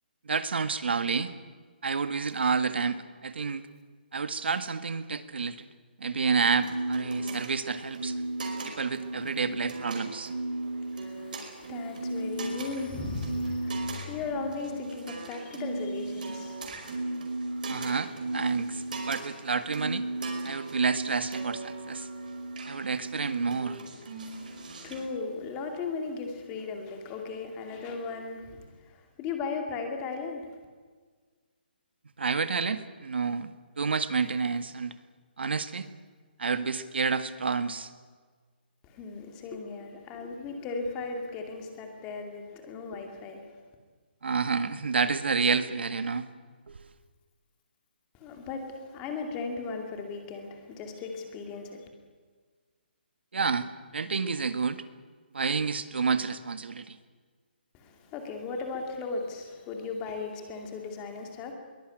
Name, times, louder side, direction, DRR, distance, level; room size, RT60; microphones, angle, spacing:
voice 1, 0.2-1.3 1.8-3.6 4.1-5.7 6.0-8.1 8.6-10.3 17.7-20.0 20.4-22.1 22.6-23.8 32.2-33.5 33.8-34.9 35.4-35.9 36.4-37.9 44.2-46.3 46.7-46.8 53.3-53.7 53.9-54.8 55.3-57.0, right 5 dB, 75° right, 11 dB, 1.8 m, -29 dB
sound 1, 6.3-25.0, right 2 dB, 50° right, 5.2 m, -36 dB
sound 2, 10.8-10.9 11.4-14.5, left 3 dB, 60° left, 2.4 m, -45 dB
voice 2, 10.8-16.8 24.3-30.5 38.8-43.5 48.1-51.9 57.7-61.5, left 4 dB, 15° left, 4 dB, 2.4 m, -37 dB
22.0 x 19.5 x 9.2 m, 1.5 s
hypercardioid pair, 175°, 6 cm